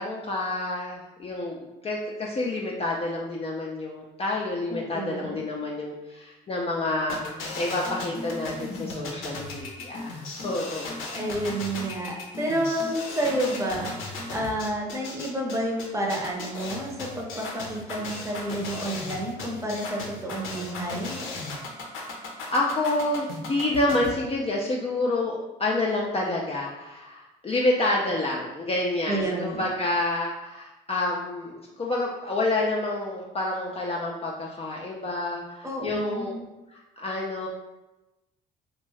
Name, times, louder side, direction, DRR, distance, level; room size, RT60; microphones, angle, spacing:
voice 1, 0.0-1.6 1.8-11.0 22.0-36.3 36.7-37.5, left 2 dB, 30° left, -3 dB, 0.5 m, -28 dB
voice 2, 4.7-5.4 11.1-21.2 29.1-29.7 35.6-36.5, right 1 dB, 15° right, -1 dB, 0.7 m, -30 dB
sound 1, 7.1-24.1, left 3 dB, 70° left, 0.7 m, -36 dB
2.6 x 2.2 x 3.2 m, 1.0 s
hypercardioid pair, 55°, 21 cm